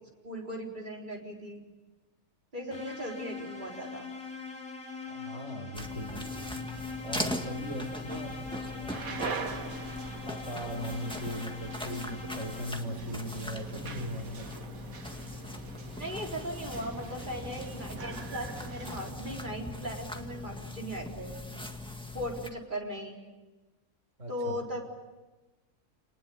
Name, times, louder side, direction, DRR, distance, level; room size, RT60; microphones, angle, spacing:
voice 1, 0.2-1.6 2.5-4.1 15.9-21.3 22.1-23.2 24.3-24.8, equal, 35° right, -1 dB, 4.4 m, -38 dB
sound 1, 2.7-13.1, left 4 dB, 75° left, 3.4 m, -42 dB
voice 2, 5.1-6.5 7.0-9.2 10.1-14.6 24.2-24.6, equal, 60° right, 4 dB, 4.5 m, -39 dB
sound 2, 5.7-22.5, left 2 dB, 5° left, 1.8 m, -40 dB
sound 3, 8.9-19.1, right 5 dB, 75° right, 2.0 m, -43 dB
29.0 x 20.0 x 8.6 m, 1.2 s
omnidirectional pair, 1.5 m